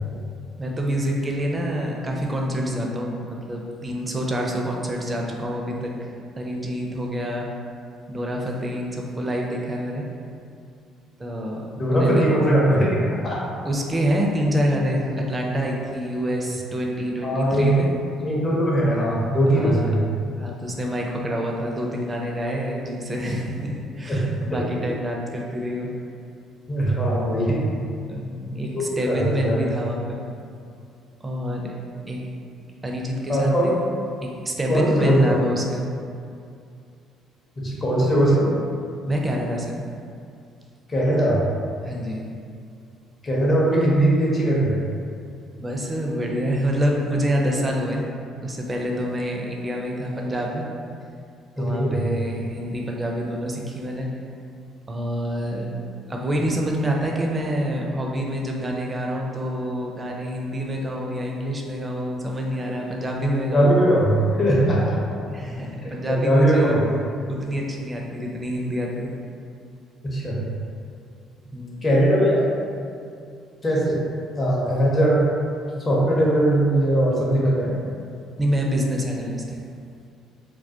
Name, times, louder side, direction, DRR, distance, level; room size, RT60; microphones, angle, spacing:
voice 1, 0.6-7.5 8.1-10.1 11.2-12.2 13.6-17.9 19.5-19.9 20.3-26.0 28.1-30.3 31.2-31.8 32.1-32.3 32.8-33.7 34.2-35.9 39.1-39.8 41.8-42.3 45.6-48.1 48.4-50.7 51.6-54.2 54.9-55.8 56.1-63.8 65.3-66.8 67.3-69.2 71.5-71.9 78.4-79.6, equal, 25° right, -1 dB, 0.4 m, -27 dB
voice 2, 11.8-13.0 13.2-13.4 17.2-17.7 18.2-20.0 24.1-24.2 24.5-24.6 26.7-27.8 28.7-29.6 33.3-33.7 34.7-35.3 37.6-38.5 40.9-41.4 43.2-44.8 51.6-52.0 63.5-65.0 65.8-65.9 66.2-66.8 70.0-70.5 71.8-72.5 73.6-74.0 74.4-75.2 75.8-77.7, right 1 dB, 30° left, -5 dB, 0.6 m, -20 dB
2.2 x 2.1 x 2.7 m, 2.4 s
hypercardioid pair, 50°, 0 cm